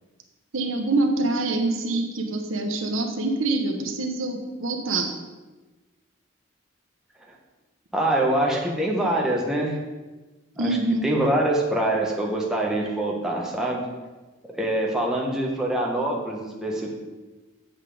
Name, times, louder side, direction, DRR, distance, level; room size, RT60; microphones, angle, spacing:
voice 1, 0.5-5.1 10.6-11.1, right 2 dB, 85° right, 4 dB, 1.2 m, -25 dB
voice 2, 7.9-9.8 10.6-13.8 14.5-16.9, right 1 dB, 5° right, -3 dB, 1.4 m, -24 dB
8.3 x 7.6 x 5.1 m, 1.2 s
head